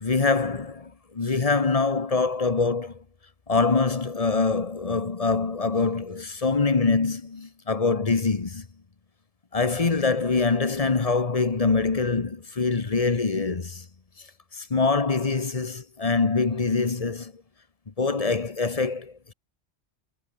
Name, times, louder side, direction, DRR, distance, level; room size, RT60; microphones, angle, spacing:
voice 1, 0.0-3.0 3.5-8.7 9.5-13.9 14.5-17.4 18.0-19.3, left 4 dB, 35° left, 1.1 m, -24 dB
omnidirectional pair, 1.2 m